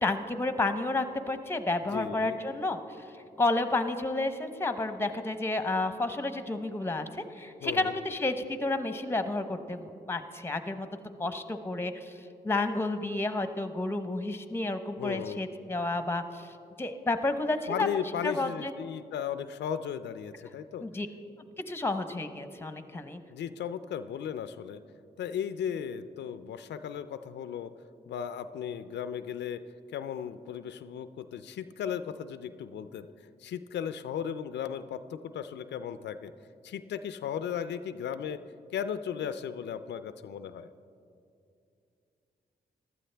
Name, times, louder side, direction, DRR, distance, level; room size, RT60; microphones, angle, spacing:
voice 1, 0.0-2.8 3.4-10.9 11.2-12.1 12.4-16.5 16.8-17.9 18.2-18.7 20.8-21.1 21.7-23.2, left 2 dB, 15° left, 9 dB, 0.8 m, -31 dB
voice 2, 1.8-2.4 7.6-8.0 15.0-15.4 17.7-20.8 23.3-24.8 25.2-27.7 28.1-29.6 29.9-33.1 33.4-36.3 36.6-38.4 38.7-40.7, left 8 dB, 90° left, 12 dB, 0.4 m, -36 dB
15.0 x 12.0 x 3.4 m, 2.6 s
cardioid pair, 60°, 17 cm